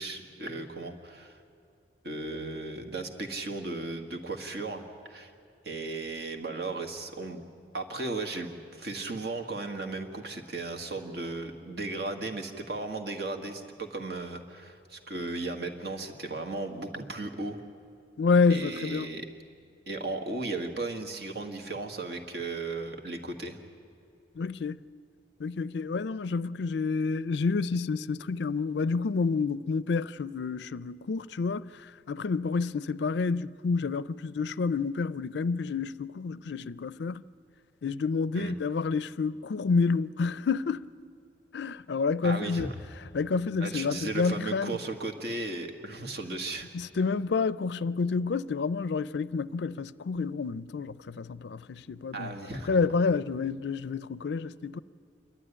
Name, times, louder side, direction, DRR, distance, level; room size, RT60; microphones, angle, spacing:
voice 1, 0.0-1.4 2.0-4.8 5.1-5.3 5.6-7.4 7.7-17.6 18.5-19.2 19.9-23.6 38.3-38.5 42.2-42.7 43.6-46.7 52.1-52.8, right 2 dB, 60° right, 1.8 m, -36 dB
voice 2, 18.2-19.1 24.4-24.8 25.4-37.2 37.8-40.8 41.5-42.7 43.1-44.7 46.7-52.3 52.6-54.8, left 4 dB, 70° left, 0.4 m, -29 dB
27.5 x 12.0 x 10.0 m
head